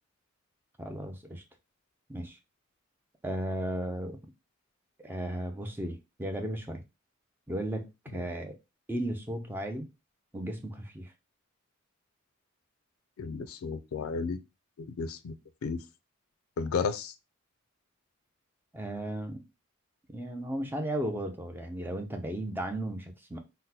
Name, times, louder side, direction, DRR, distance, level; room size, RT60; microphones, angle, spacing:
voice 1, 0.8-1.4 2.1-2.4 3.2-4.2 5.0-6.8 7.5-8.6 8.9-9.9 10.3-11.1 18.7-19.4 20.1-23.4, right 1 dB, 10° right, 0.4 m, -35 dB
voice 2, 13.2-14.4 14.8-15.3 15.6-15.8 16.6-17.1, left 5 dB, 90° left, 0.4 m, -33 dB
3.7 x 2.1 x 2.8 m
head